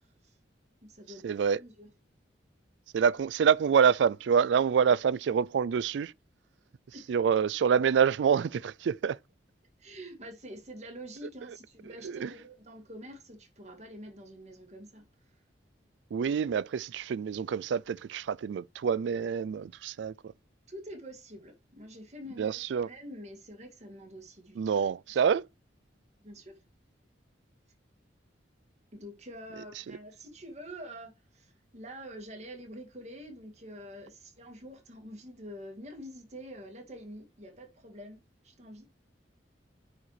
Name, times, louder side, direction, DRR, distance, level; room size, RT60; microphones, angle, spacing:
voice 1, 0.0-0.4 0.8-1.9 6.9-7.1 9.8-15.3 20.7-24.9 25.3-25.4 26.2-26.6 28.9-38.2 38.4-38.9, equal, 35° right, 2.3 m, -46 dB
voice 2, 1.2-1.6 2.9-6.1 7.1-9.2 12.2-12.3 16.1-20.1 22.4-22.9 24.6-25.4, right 7 dB, 75° right, 0.3 m, -26 dB
9.8 x 5.0 x 3.3 m
head